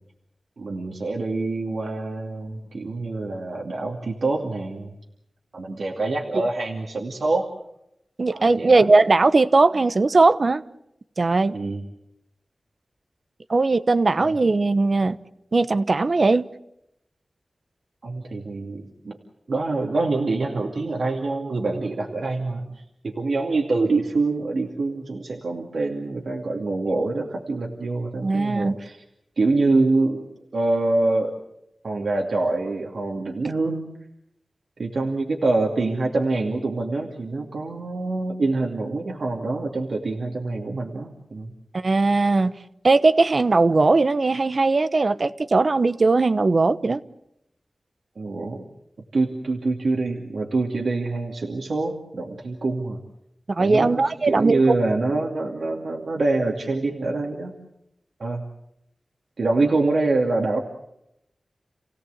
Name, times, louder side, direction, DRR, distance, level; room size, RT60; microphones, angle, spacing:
voice 1, 0.6-4.9 5.5-7.5 8.3-8.8 11.5-11.8 14.2-14.3 18.0-19.2 19.5-29.0 29.4-30.2 30.5-31.4 31.8-33.9 34.8-41.5 48.2-48.6 49.1-53.0 53.6-57.5 58.2-58.4 59.4-60.6, right 3 dB, 75° right, 2.5 m, -25 dB
voice 2, 8.2-10.6 11.2-11.6 13.5-15.2 15.5-16.5 28.2-28.8 41.7-42.6 42.8-47.0 53.5-54.6, right 3 dB, 55° right, 1.0 m, -19 dB
29.0 x 17.0 x 8.2 m
wide cardioid pair, 60°, 0 cm